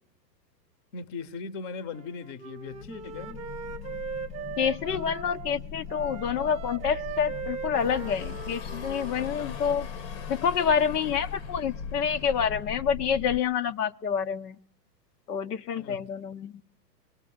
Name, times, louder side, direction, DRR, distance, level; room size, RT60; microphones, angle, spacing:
voice 1, 0.9-3.4 9.2-9.6 15.8-16.1, left 5 dB, 30° left, 1.0 m, -39 dB
Wind instrument woodwind instrument, 1.9-5.5 5.9-9.5, right 7 dB, 10° right, 1.1 m, -40 dB
sound 1, 2.7-13.4, left 6 dB, 85° left, 2.0 m, -40 dB
voice 2, 4.6-9.9 10.3-14.6 15.3-16.6, left 7 dB, 65° left, 1.1 m, -28 dB
sound 2, 7.7-12.9, left 7 dB, 45° left, 1.2 m, -45 dB
27.5 x 22.0 x 9.5 m
hypercardioid pair, 135°, 50 cm